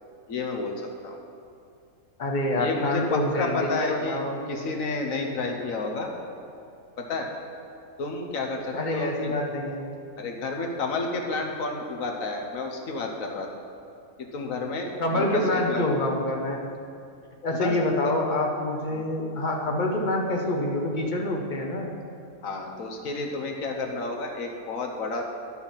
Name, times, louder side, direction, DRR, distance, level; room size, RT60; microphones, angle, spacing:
voice 1, 0.3-1.2 2.6-6.1 7.0-7.3 8.0-9.3 10.2-13.5 14.2-15.9 17.5-17.8 18.0-18.1 18.9-19.0 22.4-25.2, left 3 dB, 70° left, 2 dB, 1.3 m, -31 dB
voice 2, 2.2-4.4 8.7-9.9 15.0-16.7 17.4-21.9, left 1 dB, 35° left, 0 dB, 1.1 m, -26 dB
10.5 x 6.2 x 5.7 m, 2.5 s
omnidirectional pair, 1.5 m